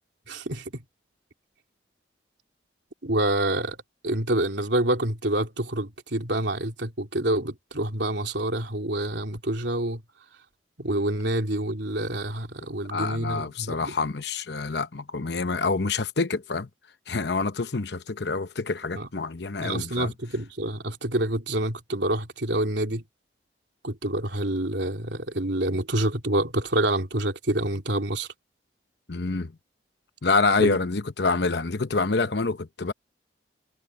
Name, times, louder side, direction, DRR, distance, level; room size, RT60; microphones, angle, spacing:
voice 1, 0.3-0.8 3.0-3.8 4.0-10.0 10.8-14.0 18.9-19.1 19.6-23.0 23.8-28.3 30.6-30.8, right 1 dB, 70° right, 3.1 m, -27 dB
voice 2, 12.9-16.7 17.1-20.1 29.1-29.5 30.2-32.9, left 3 dB, 65° left, 0.8 m, -27 dB
head